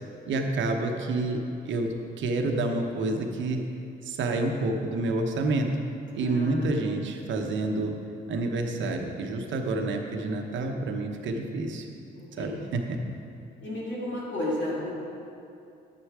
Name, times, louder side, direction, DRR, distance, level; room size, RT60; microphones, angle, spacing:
voice 1, 0.3-3.6 4.0-5.7 6.1-7.9 8.3-11.9 12.4-13.0, right 2 dB, 70° right, 3 dB, 1.0 m, -28 dB
voice 2, 6.1-6.7 12.1-12.6 13.6-14.9, left 1 dB, 70° left, -6 dB, 2.2 m, -33 dB
10.0 x 6.5 x 4.8 m, 2.6 s
cardioid pair, 90°, 20 cm